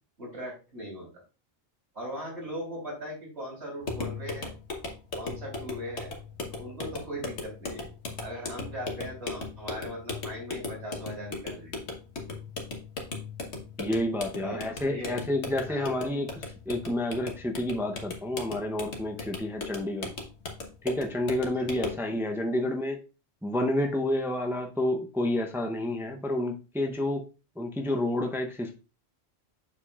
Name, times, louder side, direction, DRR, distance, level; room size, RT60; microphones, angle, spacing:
voice 1, 0.2-1.1 1.9-4.5 5.2-6.1 6.5-7.9 8.2-11.9 14.4-15.2 15.7-15.9 21.6-21.9, equal, 85° right, -3 dB, 3.6 m, -39 dB
sound 1, 3.8-22.1, left 3 dB, 85° left, 1.5 m, -38 dB
voice 2, 13.8-20.1 20.8-23.0 23.4-27.3 27.6-28.7, left 1 dB, 5° right, 3 dB, 0.6 m, -29 dB
7.3 x 6.7 x 2.4 m, 0.31 s
omnidirectional pair, 1.1 m